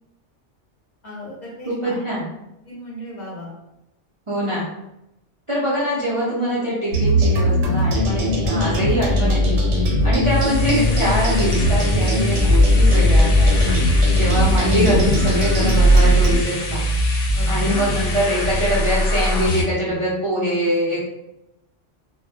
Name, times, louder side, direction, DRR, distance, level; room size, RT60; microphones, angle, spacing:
voice 1, 1.0-2.0 2.7-3.5 17.3-17.9, equal, 45° left, -5 dB, 0.7 m, -36 dB
voice 2, 1.7-2.3 4.3-4.7 5.5-9.6 10.0-13.8 14.1-16.9 17.5-21.0, equal, 45° right, -9 dB, 0.4 m, -23 dB
sound 1, 6.9-16.4, equal, 85° right, 0.9 m, -18 dB
sound 2, 10.2-19.6, left 1 dB, 80° left, 0.9 m, -23 dB
2.2 x 2.0 x 2.7 m, 0.89 s
omnidirectional pair, 1.2 m